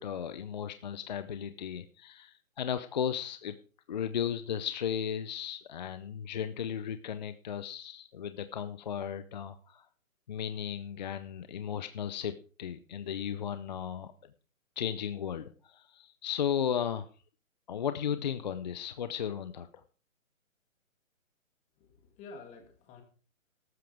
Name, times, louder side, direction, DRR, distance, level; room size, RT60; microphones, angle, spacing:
voice 1, 0.0-3.6 3.9-9.9 10.3-14.1 14.8-17.1 17.7-19.8, left 8 dB, 35° left, 11 dB, 0.6 m, -35 dB
voice 2, 21.8-23.0, left 3 dB, 15° left, 4 dB, 2.5 m, -50 dB
14.0 x 12.5 x 3.5 m, 0.38 s
hypercardioid pair, 150°, 41 cm